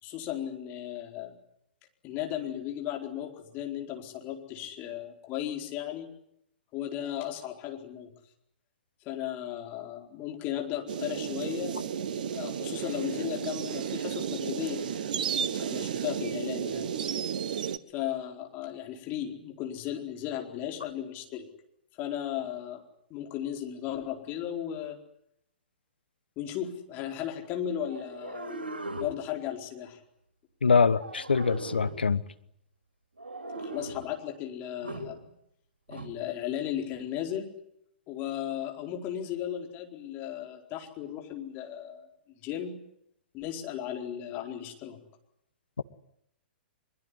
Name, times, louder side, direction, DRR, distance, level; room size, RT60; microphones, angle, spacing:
voice 1, 0.0-1.4 2.0-6.1 6.7-8.1 9.0-11.7 12.3-14.8 15.6-16.9 17.9-21.5 22.0-22.8 23.1-25.0 26.4-28.6 29.0-30.0 33.6-35.3 35.9-37.5 38.1-42.1 42.4-42.8 43.3-45.0, left 11 dB, 30° left, 3 dB, 4.5 m, -35 dB
sound 1, 10.9-17.8, right 8 dB, 55° right, 1.5 m, -33 dB
sound 2, 27.8-29.2 30.9-32.0 33.2-34.1 34.8-35.1 35.9-36.1, right 1 dB, 80° right, 4.5 m, -39 dB
voice 2, 30.6-32.2, left 5 dB, 70° left, 14 dB, 1.3 m, -23 dB
23.5 x 23.0 x 9.9 m, 0.76 s
figure-of-eight pair, 110°, 6 cm